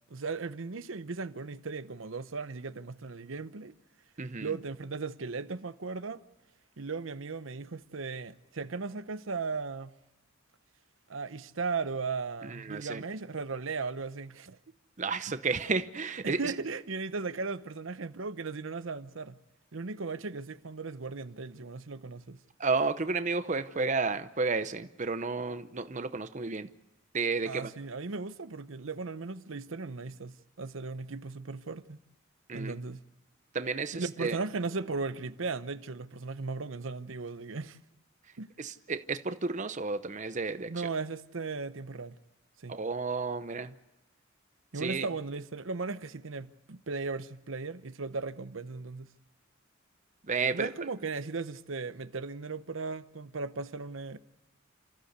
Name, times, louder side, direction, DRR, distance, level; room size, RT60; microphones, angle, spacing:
voice 1, 0.1-3.7 4.4-6.2 6.8-9.9 11.1-14.6 15.3-15.4 16.2-19.4 19.7-22.4 27.4-32.0 32.5-33.0 33.9-37.8 38.4-38.5 40.7-42.2 42.6-42.8 44.7-49.1 50.5-54.2, right 4 dB, 75° right, 0.8 m, -37 dB
voice 2, 4.2-4.5 12.4-13.0 15.0-16.5 22.6-26.7 27.1-27.7 32.5-32.8 33.5-34.4 38.6-40.9 42.7-43.7 44.7-45.1 50.3-50.7, right 4 dB, 35° right, 0.8 m, -32 dB
28.0 x 14.5 x 8.1 m
head